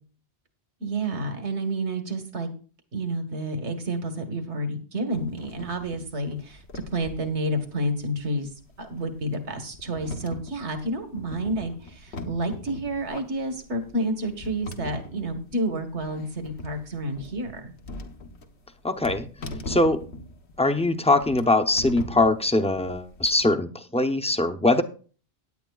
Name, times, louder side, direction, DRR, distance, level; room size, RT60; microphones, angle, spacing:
voice 1, 0.8-2.5 2.9-6.6 6.9-8.5 8.8-17.7, right 1 dB, 80° right, 7 dB, 1.8 m, -30 dB
sound 1, 5.1-23.4, left 1 dB, 70° left, 1.4 m, -41 dB
voice 2, 18.8-19.3 19.7-20.0 20.6-24.8, left 2 dB, 5° left, 7 dB, 0.6 m, -22 dB
16.5 x 10.0 x 2.4 m, 0.38 s
omnidirectional pair, 1.1 m